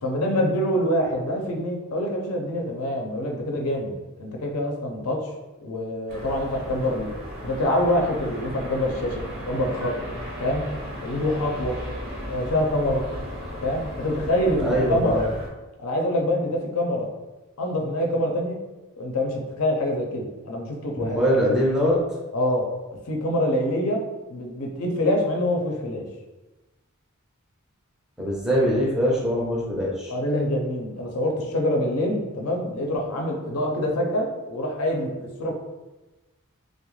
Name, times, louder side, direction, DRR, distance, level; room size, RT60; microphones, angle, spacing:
voice 1, 0.0-5.3 5.6-7.1 7.4-10.0 10.4-10.6 11.0-11.8 12.3-13.1 13.6-15.3 15.8-17.1 17.6-18.6 19.0-21.2 22.3-22.7 23.1-24.0 24.3-26.1 30.1-35.5, left 1 dB, 80° left, 1 dB, 0.5 m, -25 dB
sound 1, 6.1-15.5, equal, 50° right, 0.6 m, -35 dB
voice 2, 14.6-15.2 20.9-22.0 28.2-30.1, equal, 5° right, -5 dB, 0.5 m, -22 dB
2.3 x 2.0 x 3.0 m, 1.1 s
head